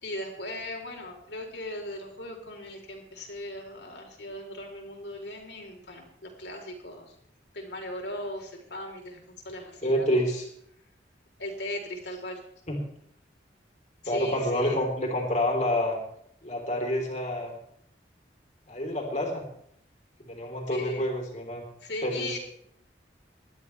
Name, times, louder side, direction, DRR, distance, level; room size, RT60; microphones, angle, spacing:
voice 1, 0.0-7.1 7.5-10.3 11.4-12.4 14.0-14.8 20.7-21.0 21.8-22.4, left 1 dB, 70° left, 1 dB, 3.7 m, -38 dB
voice 2, 9.8-10.5 12.7-12.8 14.1-16.0 16.4-17.5 18.7-19.4 20.3-21.6 22.0-22.4, equal, 40° left, 1 dB, 3.5 m, -28 dB
20.0 x 12.5 x 3.3 m, 0.70 s
head